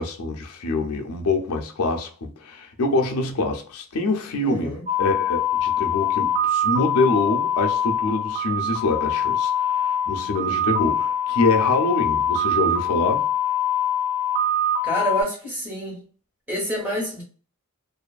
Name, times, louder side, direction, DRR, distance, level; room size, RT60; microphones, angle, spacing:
voice 1, 0.0-13.2, left 2 dB, 85° left, 0.5 m, -25 dB
voice 2, 4.4-4.8 14.8-16.0 16.5-17.2, equal, 10° right, 1.1 m, -28 dB
sound 1, 4.9-15.2, left 4 dB, 35° right, 0.4 m, -23 dB
2.6 x 2.3 x 2.3 m
head